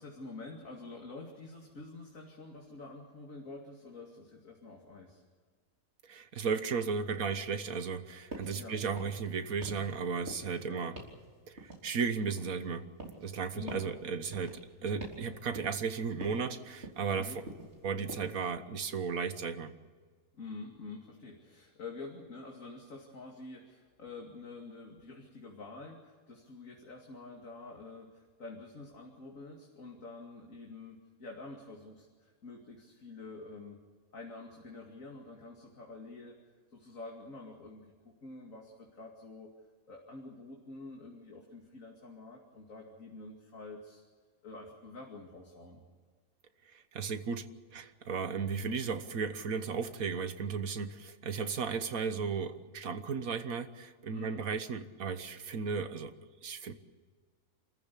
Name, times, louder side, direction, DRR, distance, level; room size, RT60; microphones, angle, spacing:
voice 1, 0.0-5.2 8.5-8.8 10.6-10.8 13.5-13.8 17.2-17.4 20.3-33.8 34.1-36.4 36.7-39.5 39.9-44.0 44.4-45.8 54.1-54.5, left 3 dB, 65° left, 0 dB, 2.9 m, -47 dB
voice 2, 6.0-11.0 11.5-12.9 13.2-17.4 17.8-19.7 46.7-47.5 47.7-56.1 56.4-56.7, right 5 dB, 75° right, 10 dB, 1.7 m, -35 dB
sound 1, 8.3-8.6 8.9-9.3 9.6-10.0 10.3-10.6 11.0-11.2 11.6-12.6 13.0-13.3 13.7-13.9 14.3-14.6 15.0-15.3 15.6-15.9 16.2-16.5 16.8-17.2 17.5-17.8 18.1-18.4, right 2 dB, 50° right, 4.0 m, -45 dB
27.5 x 14.5 x 8.5 m, 1.6 s
omnidirectional pair, 1.5 m